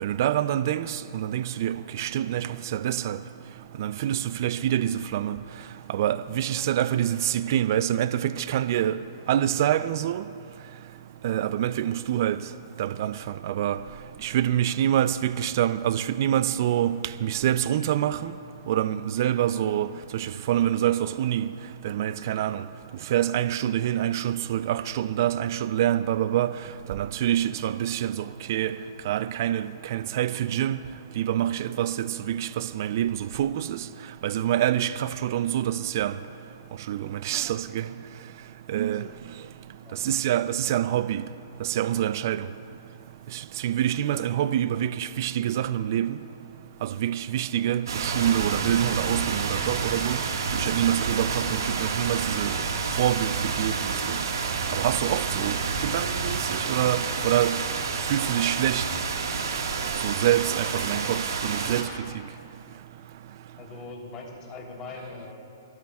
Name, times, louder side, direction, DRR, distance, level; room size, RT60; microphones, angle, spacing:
voice 1, 0.0-3.2 3.8-5.4 5.9-9.0 9.3-10.3 11.2-12.4 12.8-13.8 14.2-18.3 18.7-21.5 21.8-22.6 23.1-26.5 26.9-28.7 29.1-30.8 31.2-33.9 34.2-36.2 36.9-37.9 38.7-39.1 40.0-41.2 41.6-42.4 43.3-46.2 46.8-50.2 50.5-52.6 53.0-54.2 54.7-57.6 58.1-58.9 60.0-61.9 62.1-62.2, right 11 dB, 55° right, 0.4 m, -26 dB
sound 1, 47.9-61.8, right 5 dB, 75° right, 1.7 m, -29 dB
voice 2, 63.6-65.3, left 3 dB, 25° left, 3.3 m, -41 dB
26.5 x 14.0 x 2.4 m
hypercardioid pair, 140°, 2 cm